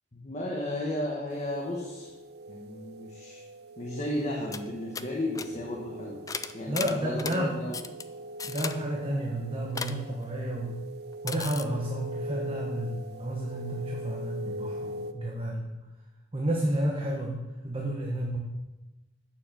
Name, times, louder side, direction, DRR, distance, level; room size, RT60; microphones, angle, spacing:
voice 1, 0.1-2.1 2.5-3.4 3.8-6.2 6.5-7.8, left 1 dB, 40° left, -1 dB, 1.3 m, -34 dB
sound 1, 1.3-15.1, right 1 dB, 60° right, 0.8 m, -42 dB
sound 2, 4.2-4.3 4.5-4.7 4.9-5.1 5.4-5.5 6.3-7.4 7.7-8.0 8.4-8.8 9.8-10.0 11.3-11.6, left 5 dB, 20° left, 0.4 m, -35 dB
voice 2, 6.7-7.6 8.4-10.9 11.2-15.8 16.3-18.4, right 1 dB, 30° right, -1 dB, 1.2 m, -31 dB
8.6 x 6.9 x 6.7 m, 1.1 s
head